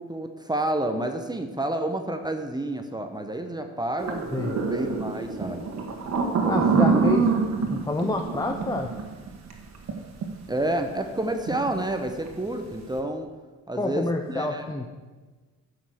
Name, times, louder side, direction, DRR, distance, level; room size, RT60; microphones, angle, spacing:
voice 1, 0.0-5.7 6.4-6.9 10.5-13.3 13.7-14.7, right 1 dB, 15° right, 6 dB, 0.9 m, -29 dB
sound 1, 4.0-9.9 10.2-10.3 11.5-11.7 12.0-12.3, right 5 dB, 60° right, 1.8 m, -25 dB
voice 2, 6.5-7.3 7.7-8.9 13.7-14.9, left 2 dB, 10° left, 4 dB, 0.8 m, -28 dB
10.0 x 6.1 x 6.4 m, 1.3 s
cardioid pair, 90°, 30 cm